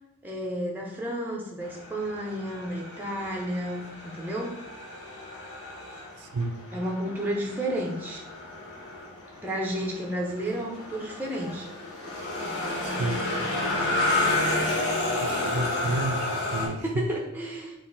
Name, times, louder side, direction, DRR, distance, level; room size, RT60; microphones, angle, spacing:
voice 1, 0.2-4.6 6.7-8.2 9.4-11.7 16.8-17.7, right 1 dB, 10° right, -2 dB, 0.6 m, -31 dB
sound 1, 1.6-16.7, left 2 dB, 80° left, 1.5 m, -31 dB
voice 2, 6.2-6.6 12.8-13.2 15.0-16.8, right 2 dB, 85° right, 6 dB, 0.5 m, -31 dB
4.2 x 2.5 x 3.9 m, 0.91 s
head